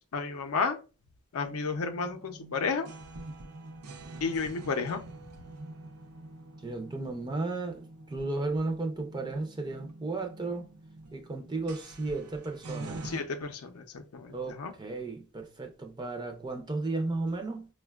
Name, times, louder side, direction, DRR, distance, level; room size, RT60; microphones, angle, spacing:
voice 1, 0.1-0.8 1.3-2.9 4.2-5.0 13.0-14.7, left 4 dB, 80° left, 0.5 m, -32 dB
sound 1, 1.4-13.2, right 2 dB, 85° right, 0.5 m, -46 dB
voice 2, 6.6-10.7 11.1-13.0 14.3-17.7, right 3 dB, 20° right, 0.4 m, -34 dB
4.9 x 2.2 x 2.3 m
head